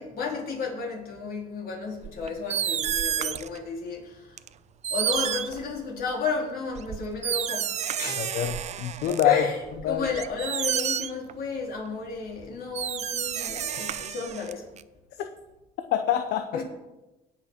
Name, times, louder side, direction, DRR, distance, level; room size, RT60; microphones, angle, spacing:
voice 1, 0.0-4.3 4.9-7.7 8.0-8.3 9.1-14.7 16.5-16.6, left 4 dB, 60° left, 0 dB, 3.3 m, -32 dB
sound 1, 2.0-3.6 4.4-4.5 4.8-6.1 6.8-9.2 9.7-11.3 12.4-12.5 12.7-14.8, right 9 dB, 40° right, 0.5 m, -30 dB
voice 2, 8.2-9.4 9.8-10.1 15.9-16.5, left 11 dB, 80° left, 7 dB, 0.8 m, -25 dB
18.0 x 6.1 x 4.4 m, 1.0 s
cardioid pair, 110°, 17 cm